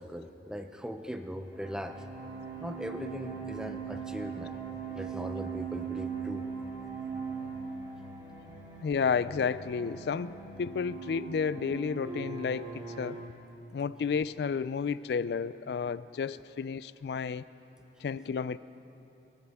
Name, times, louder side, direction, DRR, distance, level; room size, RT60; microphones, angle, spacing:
voice 1, 0.0-2.0 2.6-4.6 4.9-6.5 11.2-11.3, equal, 5° right, 7 dB, 0.5 m, -39 dB
sound 1, 1.5-13.2, right 6 dB, 25° right, 3.0 m, -40 dB
voice 2, 8.8-13.2 13.7-17.5 18.0-18.6, left 6 dB, 65° left, 17 dB, 0.3 m, -32 dB
21.5 x 15.0 x 3.5 m, 3.0 s
head